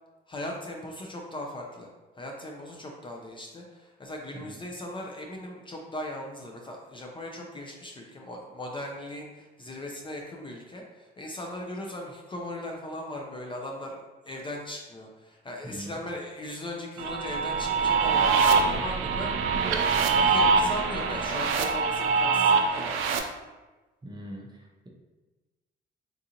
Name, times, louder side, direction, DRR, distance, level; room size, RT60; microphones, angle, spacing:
voice 1, 0.3-14.0 14.3-19.8 20.0-23.0, left 1 dB, 25° left, 0 dB, 0.5 m, -38 dB
sound 1, 17.0-23.2, right 5 dB, 85° right, 0.4 m, -24 dB
voice 2, 24.0-24.5, equal, 20° right, -1 dB, 0.7 m, -40 dB
3.8 x 2.4 x 2.8 m, 1.2 s
cardioid pair, 90°, 20 cm